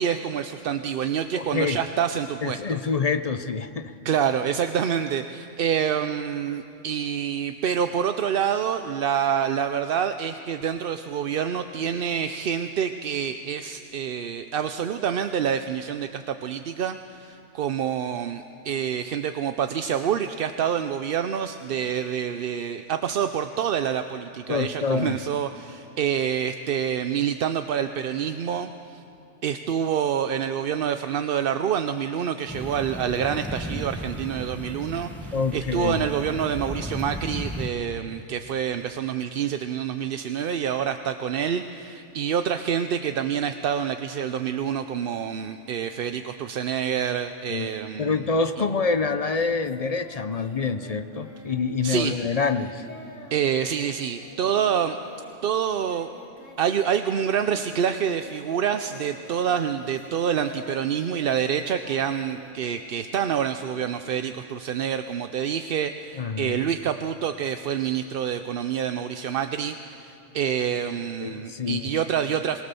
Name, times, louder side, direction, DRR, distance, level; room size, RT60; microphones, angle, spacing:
voice 1, 0.0-2.8 4.0-29.0 29.4-48.2 51.8-52.1 53.3-55.0 55.4-56.1 56.6-72.6, right 8 dB, 55° right, 8 dB, 0.7 m, -27 dB
voice 2, 1.3-1.8 2.4-3.9 24.5-25.2 35.3-36.1 47.5-47.7 48.0-52.9 66.2-66.6 71.2-71.9, left 4 dB, 40° left, 9 dB, 0.6 m, -26 dB
sound 1, 32.5-37.7, equal, ahead, 1.0 m, -35 dB
Singing, 48.9-56.9 57.1-63.0, left 1 dB, 85° left, 2.5 m, -46 dB
22.5 x 19.0 x 6.9 m, 2.7 s
omnidirectional pair, 1.3 m